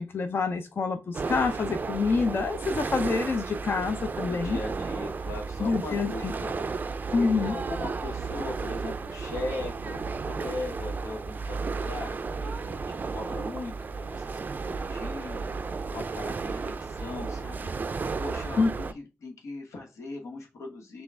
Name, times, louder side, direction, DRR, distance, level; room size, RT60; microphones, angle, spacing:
voice 1, 0.0-4.6 5.6-6.3 7.1-7.5 18.6-18.7, left 4 dB, 50° left, 0.4 m, -27 dB
sound 1, 1.1-18.9, right 4 dB, 35° right, 0.3 m, -33 dB
voice 2, 4.2-6.7 7.1-17.7 18.2-21.0, left 2 dB, 90° left, 1.1 m, -39 dB
6.2 x 2.3 x 3.4 m
wide cardioid pair, 120°, 5 cm